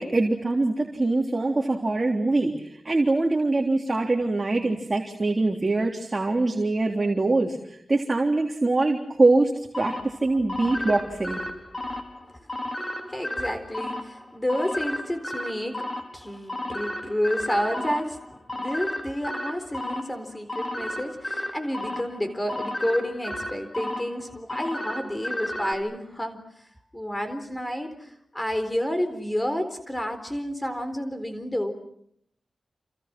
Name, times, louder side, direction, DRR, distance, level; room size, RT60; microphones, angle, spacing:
voice 1, 0.0-11.4, right 2 dB, 35° right, 1 dB, 3.5 m, -23 dB
sound 1, 9.7-25.7, left 1 dB, 35° left, 5.0 m, -33 dB
voice 2, 13.1-15.8 16.1-26.7 26.9-31.7, equal, 15° left, 9 dB, 4.0 m, -30 dB
28.5 x 28.5 x 6.1 m, 0.71 s
wide cardioid pair, 70°, 0 cm